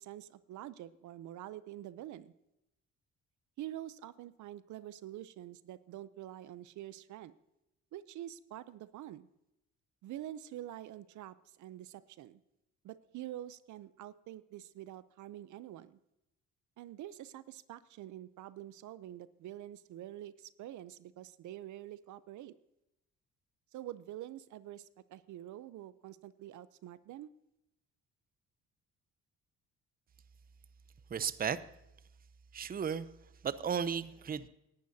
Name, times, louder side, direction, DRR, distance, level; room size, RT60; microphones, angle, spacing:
voice 1, 0.0-2.3 3.6-7.3 7.9-9.3 10.0-12.4 12.8-16.0 16.8-22.5 23.7-27.3, right 13 dB, 75° right, 16 dB, 0.6 m, -46 dB
voice 2, 31.1-31.6 32.5-33.1 33.4-34.5, right 7 dB, 30° right, 15 dB, 0.6 m, -34 dB
17.5 x 11.5 x 2.7 m, 0.87 s
cardioid pair, 90°, 30 cm